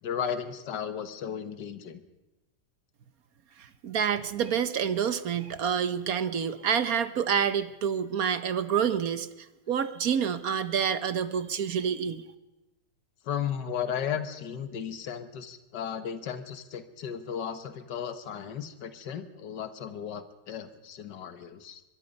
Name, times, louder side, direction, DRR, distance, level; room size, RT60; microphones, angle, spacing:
voice 1, 0.0-2.0 13.2-21.8, left 8 dB, 80° left, 10 dB, 1.8 m, -35 dB
voice 2, 3.6-9.3 9.7-12.2, right 7 dB, 60° right, 12 dB, 1.3 m, -28 dB
23.0 x 22.0 x 5.3 m, 1.0 s
omnidirectional pair, 1.8 m